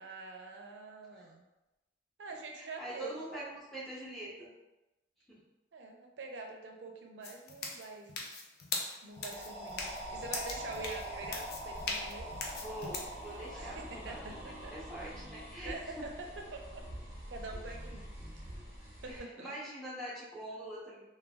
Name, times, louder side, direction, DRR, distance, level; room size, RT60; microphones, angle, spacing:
voice 1, 0.0-1.5 2.2-3.2 5.7-8.1 9.0-12.3 13.5-14.7 15.6-16.8 17.3-18.1 18.4-18.6 19.0-19.5, right 3 dB, 85° right, 2 dB, 0.5 m, -45 dB
voice 2, 2.5-4.5 5.3-5.4 11.1-11.3 12.6-16.1 19.1-21.0, right 1 dB, ahead, -7 dB, 0.7 m, -44 dB
sound 1, 7.2-13.1, left 3 dB, 60° left, 0.4 m, -40 dB
sound 2, 9.1-15.0, equal, 25° left, 1.2 m, -44 dB
sound 3, 9.7-19.2, equal, 15° right, 1.2 m, -47 dB
3.2 x 2.3 x 2.3 m, 0.99 s
head